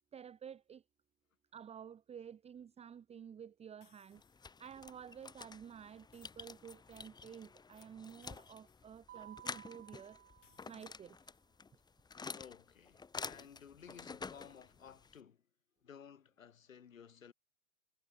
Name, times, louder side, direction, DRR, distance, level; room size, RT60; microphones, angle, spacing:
voice 1, 0.1-0.8 1.5-4.2 4.6-10.2 10.7-11.3, right 8 dB, 15° right, 1.4 m, -52 dB
sound 1, 3.8-4.7 6.0-7.2 8.2-9.5 10.4-11.7, left 12 dB, 65° left, 4.7 m, -72 dB
sound 2, 4.1-15.2, left 5 dB, 10° left, 2.0 m, -50 dB
Mallet percussion, 9.1-11.2, right 12 dB, 65° right, 3.2 m, -57 dB
voice 2, 12.3-15.4 15.8-17.3, left 7 dB, 80° left, 2.5 m, -56 dB
hypercardioid pair, 115°, 39 cm